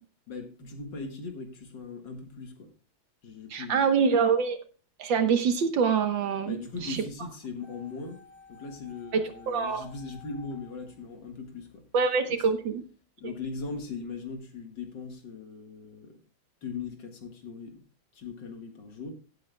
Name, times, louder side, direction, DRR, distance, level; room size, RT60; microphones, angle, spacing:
voice 1, 0.3-2.7 3.2-4.1 6.5-8.2 8.5-11.9 13.2-16.2 16.6-17.8 18.1-19.1, left 4 dB, 60° left, 2.3 m, -39 dB
voice 2, 3.5-4.6 5.0-6.6 6.8-7.0 9.1-9.8 11.9-12.8, right 6 dB, 65° right, 1.8 m, -25 dB
sound 1, 7.6-11.7 12.0-12.1, left 4 dB, 35° left, 1.6 m, -54 dB
17.0 x 8.4 x 2.3 m
omnidirectional pair, 2.3 m